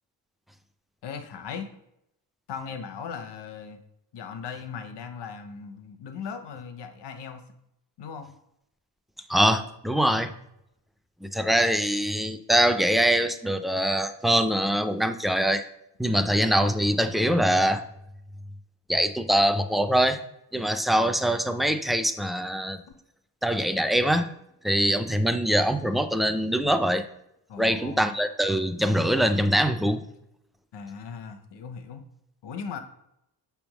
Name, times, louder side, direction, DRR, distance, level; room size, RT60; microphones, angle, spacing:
voice 1, 1.0-1.7 2.5-3.8 4.1-7.4 8.0-8.3 16.1-16.3 27.5-28.2 30.7-32.0 32.4-32.8, left 6 dB, 80° left, 7 dB, 1.0 m, -38 dB
voice 2, 9.3-10.3 11.2-15.6 16.0-17.8 18.9-20.2 20.5-22.8 23.4-24.3 24.6-27.1 27.6-30.0, equal, ahead, 9 dB, 0.3 m, -23 dB
6.0 x 3.5 x 6.0 m, 0.81 s
cardioid pair, 125°, 41 cm